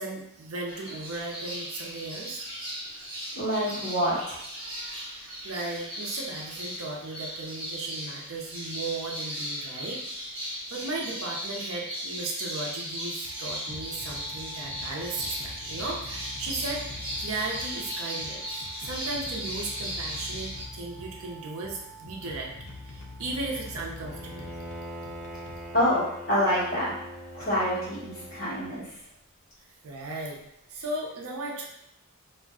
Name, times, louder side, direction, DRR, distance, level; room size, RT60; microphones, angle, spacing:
voice 1, 0.0-2.5 5.1-10.0 10.7-16.8 17.2-22.5 22.8-24.6 29.8-30.4 30.7-31.7, right 2 dB, 75° right, -1 dB, 0.6 m, -36 dB
sound 1, 0.7-20.6, equal, 25° right, 0.9 m, -37 dB
voice 2, 3.4-4.4 25.7-26.9 27.3-28.9, equal, 40° left, -13 dB, 1.1 m, -26 dB
sound 2, 13.1-26.3, left 1 dB, 65° left, 0.5 m, -44 dB
Bowed string instrument, 24.0-28.9, equal, ahead, 0.5 m, -42 dB
2.5 x 2.1 x 3.5 m, 0.78 s
head